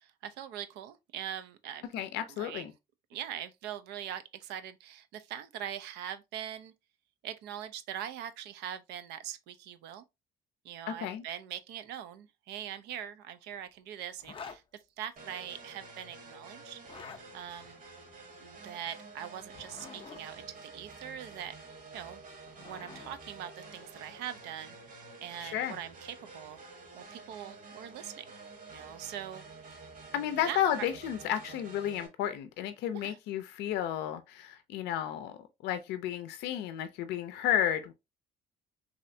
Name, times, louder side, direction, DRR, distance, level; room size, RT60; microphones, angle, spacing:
voice 1, 0.0-1.8 2.3-2.7 3.1-6.7 7.2-10.1 10.6-14.6 15.0-16.8 17.3-17.8 18.4-21.5 21.9-22.2 22.6-24.8 25.2-26.6 26.9-28.2 28.7-29.4 30.5-30.9 33.0-33.2, right 10 dB, 90° right, 0.5 m, -42 dB
voice 2, 1.9-2.7 10.9-11.2 25.4-25.8 30.1-37.9, left 10 dB, 85° left, 0.4 m, -32 dB
Zipper (clothing), 14.2-14.6 16.7-17.2 19.4-20.2 22.1-23.2, left 5 dB, 30° left, 0.5 m, -47 dB
sound 1, 15.2-32.1, right 3 dB, 50° right, 1.1 m, -50 dB
3.2 x 2.7 x 2.5 m
cardioid pair, 110°, 17 cm